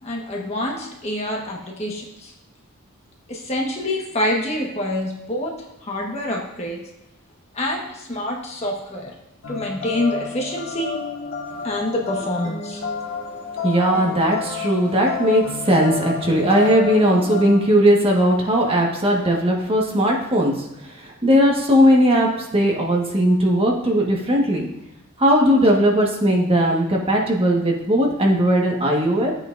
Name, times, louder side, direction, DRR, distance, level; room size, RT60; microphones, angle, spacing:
voice 1, 0.0-2.3 3.3-5.5 5.8-6.8 7.5-9.1 9.5-11.0 11.6-12.8, left 1 dB, 30° left, -1 dB, 1.4 m, -26 dB
sound 1, 9.4-17.6, left 6 dB, 65° left, 1.8 m, -31 dB
voice 2, 13.6-24.7 25.2-29.3, equal, 30° right, -1 dB, 1.5 m, -18 dB
12.5 x 8.4 x 2.6 m, 0.91 s
head